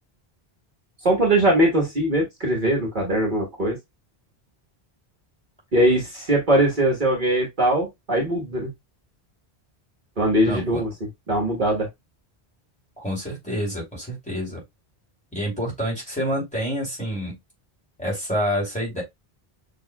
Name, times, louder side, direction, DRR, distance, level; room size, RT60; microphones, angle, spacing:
voice 1, 1.0-3.8 5.7-8.7 10.2-10.9 11.3-11.9, right 1 dB, 50° right, 1.5 m, -21 dB
voice 2, 10.4-10.8 13.0-14.6 15.3-17.3 18.0-19.0, equal, 5° left, 3.0 m, -28 dB
6.3 x 3.1 x 2.3 m
omnidirectional pair, 1.0 m